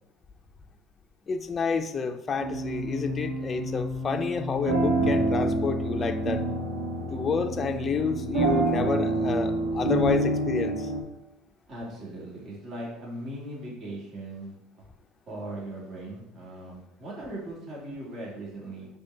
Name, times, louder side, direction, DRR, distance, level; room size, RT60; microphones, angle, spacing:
voice 1, 1.3-6.4 7.1-10.9, left 5 dB, 35° left, 6 dB, 0.5 m, -29 dB
sound 1, 2.4-11.0, right 2 dB, 85° right, 1.8 m, -27 dB
voice 2, 11.7-14.5 15.3-18.9, right 1 dB, 50° right, -4 dB, 2.6 m, -39 dB
5.2 x 4.1 x 5.5 m, 0.87 s
hypercardioid pair, 75°, 0 cm